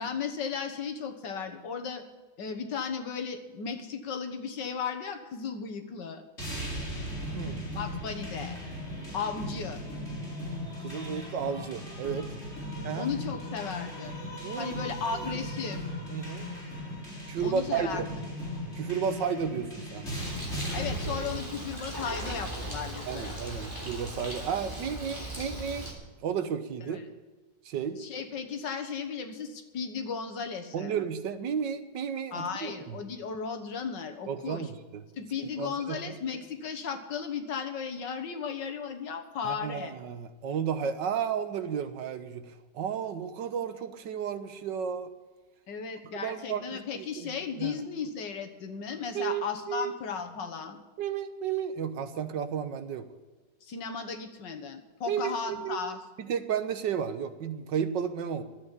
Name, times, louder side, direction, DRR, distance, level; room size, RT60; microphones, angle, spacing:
voice 1, 0.0-2.0 2.4-6.2 7.7-8.6 9.1-9.8 13.0-14.2 14.5-15.8 17.4-18.0 20.7-23.3 26.9-27.0 28.0-30.9 32.3-34.7 35.2-39.9 45.7-50.8 53.6-56.0, left 6 dB, 80° left, 6 dB, 2.1 m, -35 dB
sound 1, 6.4-21.4, equal, 35° left, 4.6 m, -37 dB
voice 2, 7.3-7.7 10.8-12.3 12.8-13.1 14.4-14.8 15.1-15.2 16.1-16.5 17.3-18.1 18.8-20.1 23.1-25.9 26.2-27.0 27.7-28.0 30.7-33.0 34.3-35.0 35.6-36.1 39.4-45.1 46.2-47.8 49.1-49.9 51.0-53.1 55.1-55.8 56.2-58.4, right 7 dB, 80° right, 10 dB, 1.7 m, -33 dB
Bird, 20.1-25.9, right 1 dB, 10° right, 3.5 m, -38 dB
12.0 x 8.4 x 9.9 m, 1.2 s
omnidirectional pair, 1.9 m